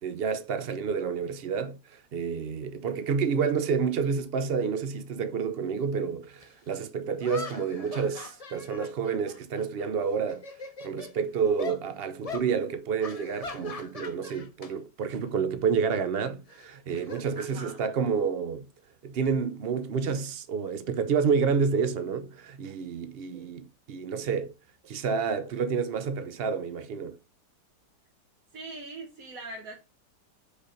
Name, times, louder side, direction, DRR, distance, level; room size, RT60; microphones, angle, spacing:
voice 1, 0.0-10.4 10.8-18.6 19.0-24.5 24.8-27.2, right 6 dB, 80° right, 0.5 m, -29 dB
sound 1, 6.4-6.5 7.2-9.9 10.2-11.1 11.6-11.8 12.2-12.5 13.0-14.7 15.0-15.3 16.5-17.9, left 4 dB, 45° left, 0.4 m, -41 dB
voice 2, 17.3-17.9 23.2-23.6 28.5-29.8, right 3 dB, 55° right, 1.6 m, -42 dB
5.1 x 4.5 x 4.9 m
omnidirectional pair, 1.9 m